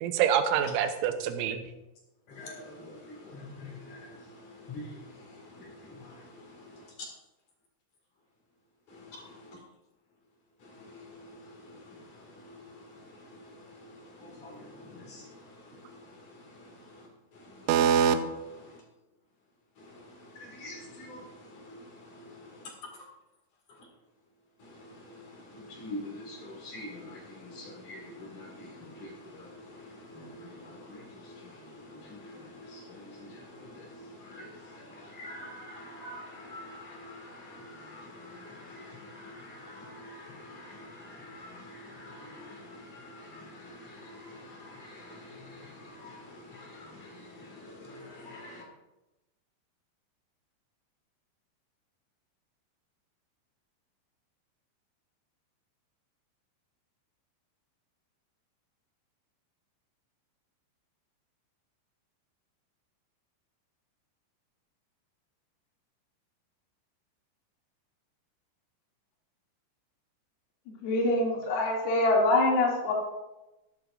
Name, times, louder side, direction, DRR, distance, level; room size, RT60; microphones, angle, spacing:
voice 1, 0.0-1.6 17.7-18.2, right 8 dB, 80° right, 7 dB, 3.1 m, -25 dB
voice 2, 2.3-4.1 4.4-5.0 5.5-6.3 10.9-11.0 11.4-11.5 12.5-12.6 14.2-15.3 20.3-21.2 21.6-21.8 22.1-22.5 24.6-25.2 25.5-48.6, left 1 dB, 50° left, 0 dB, 2.9 m, -46 dB
voice 3, 70.8-72.9, left 2 dB, 85° left, -2 dB, 5.1 m, -24 dB
16.0 x 11.0 x 2.5 m, 0.99 s
omnidirectional pair, 5.8 m